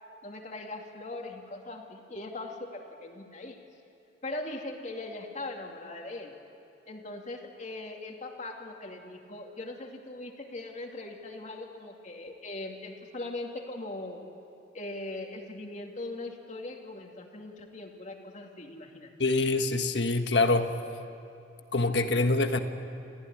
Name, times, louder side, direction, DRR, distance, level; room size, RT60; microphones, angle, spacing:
voice 1, 0.2-3.6 4.2-6.3 6.9-14.2 14.7-19.1, left 2 dB, 45° left, 2 dB, 2.5 m, -40 dB
voice 2, 19.2-20.7 21.7-22.6, left 2 dB, 85° left, 7 dB, 1.4 m, -25 dB
28.0 x 15.0 x 9.9 m, 2.6 s
head